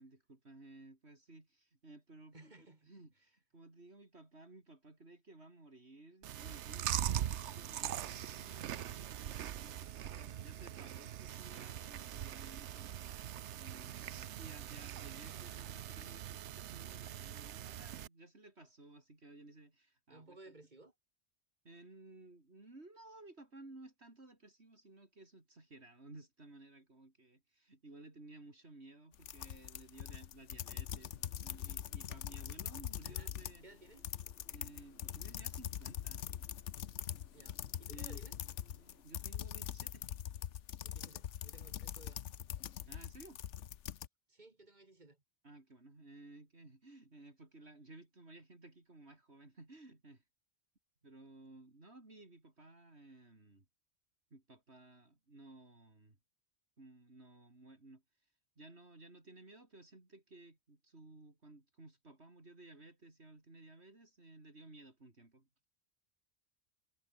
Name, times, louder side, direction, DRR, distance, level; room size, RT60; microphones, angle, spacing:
voice 1, 0.0-20.4 21.6-33.7 34.5-36.3 37.9-38.2 39.0-40.1 42.9-43.4 45.4-50.2 51.0-53.7 54.3-56.2 56.8-58.0 58.6-65.5, right 2 dB, 65° right, 4.5 m, -57 dB
voice 2, 2.3-3.3 20.1-20.9 33.0-33.3 33.6-34.1 37.3-38.4 40.8-42.2 44.3-45.2, right 2 dB, 40° right, 2.4 m, -58 dB
Chewing mastication, 6.2-18.1, right 11 dB, 80° right, 1.0 m, -42 dB
sound 1, 29.1-33.6 33.9-44.1, left 10 dB, 90° left, 1.1 m, -43 dB
sound 2, 30.6-39.0, left 2 dB, 65° left, 3.7 m, -66 dB
omnidirectional pair, 1.2 m